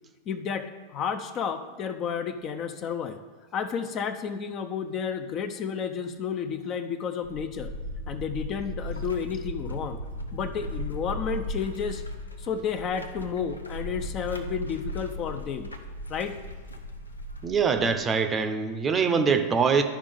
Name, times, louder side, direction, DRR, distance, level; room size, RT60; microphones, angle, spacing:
voice 1, 0.3-3.2 3.5-7.7 8.1-10.0 10.3-12.0 12.4-15.7 16.1-16.4, left 7 dB, 35° left, 8 dB, 0.5 m, -31 dB
sound 1, 7.2-18.0, equal, 80° left, 0.6 m, -37 dB
voice 2, 17.4-19.8, right 5 dB, 20° right, 7 dB, 0.6 m, -23 dB
12.5 x 5.1 x 3.5 m, 1.4 s
figure-of-eight pair, 90°, 0 cm